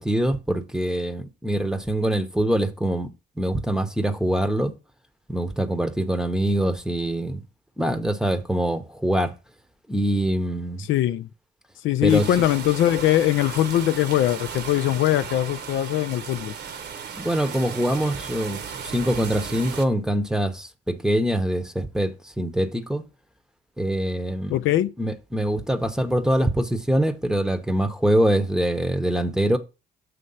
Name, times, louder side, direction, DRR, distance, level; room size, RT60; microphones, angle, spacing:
voice 1, 0.0-3.1 3.4-4.7 5.3-7.4 7.8-9.3 9.9-10.9 12.0-12.2 17.2-23.0 23.8-24.6 25.0-29.6, right 1 dB, 5° right, 0.8 m, -24 dB
voice 2, 10.8-11.3 11.8-16.5 24.5-24.9, left 13 dB, 75° left, 0.4 m, -21 dB
sound 1, 12.1-19.9, right 6 dB, 60° right, 0.9 m, -35 dB
7.6 x 3.2 x 5.5 m
cardioid pair, 90°, 20 cm